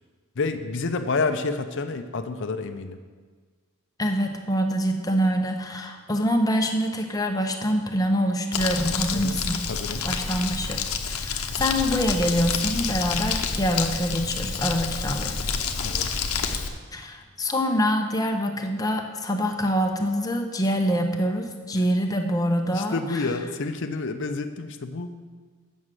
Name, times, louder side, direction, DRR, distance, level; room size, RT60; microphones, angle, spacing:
voice 1, 0.4-3.0 9.1-9.4 9.7-10.1 15.8-16.2 22.7-25.1, left 3 dB, 60° left, 7 dB, 0.6 m, -29 dB
voice 2, 4.0-9.6 10.0-15.5 16.9-23.0, equal, 15° left, 3 dB, 0.8 m, -25 dB
Crumpling crinkling, 8.5-16.7, left 5 dB, 85° left, 0.8 m, -28 dB
8.1 x 6.3 x 7.4 m, 1.5 s
head